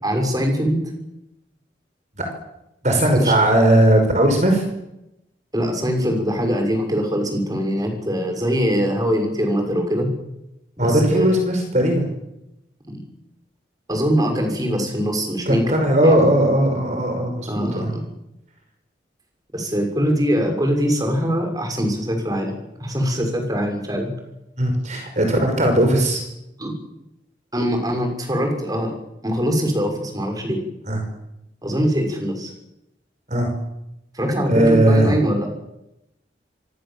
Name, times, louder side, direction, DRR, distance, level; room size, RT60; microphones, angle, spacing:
voice 1, 0.0-0.8 3.2-3.3 5.5-10.1 10.8-11.3 12.9-13.0 13.9-16.2 17.5-18.0 19.5-22.5 22.8-24.1 26.6-26.7 27.5-28.9 29.2-30.6 31.6-32.5 34.1-35.5, equal, 20° right, 4 dB, 6.4 m, -22 dB
voice 2, 2.8-4.6 10.8-12.1 15.5-17.9 24.6-26.2 30.9-31.0 33.3-33.5 34.5-35.1, right 1 dB, 40° right, 4 dB, 5.5 m, -18 dB
27.0 x 24.0 x 7.6 m, 0.88 s
head